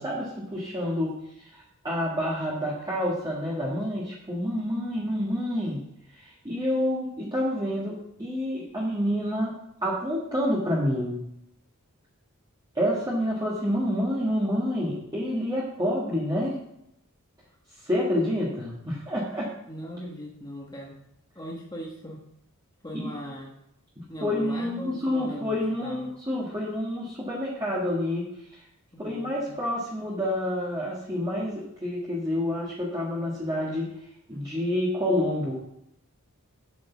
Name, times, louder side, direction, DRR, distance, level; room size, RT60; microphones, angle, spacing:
voice 1, 0.0-5.8 6.1-9.5 9.8-11.2 12.7-16.6 17.8-19.5 23.0-23.1 24.2-28.6 29.0-33.9 34.3-35.6, left 1 dB, 20° right, -5 dB, 1.6 m, -28 dB
voice 2, 19.7-21.0 21.3-22.2 22.8-23.5 24.1-26.1 28.9-29.6, equal, 20° left, -2 dB, 1.2 m, -39 dB
7.9 x 5.3 x 6.9 m, 0.80 s
head